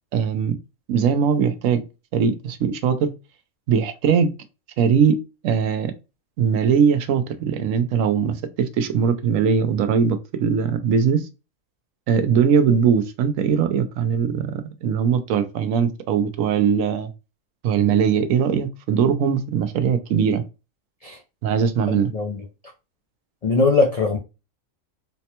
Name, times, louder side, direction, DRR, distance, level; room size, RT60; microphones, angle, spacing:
voice 1, 0.1-0.5 0.9-1.8 2.1-3.1 3.7-4.3 4.8-5.2 5.4-5.9 6.4-11.3 12.1-17.1 17.6-20.4 21.4-22.1, right 7 dB, 80° right, 1.0 m, -20 dB
voice 2, 21.9-22.5 23.4-24.2, left 3 dB, 80° left, 0.3 m, -21 dB
4.2 x 2.1 x 2.8 m
omnidirectional pair, 1.4 m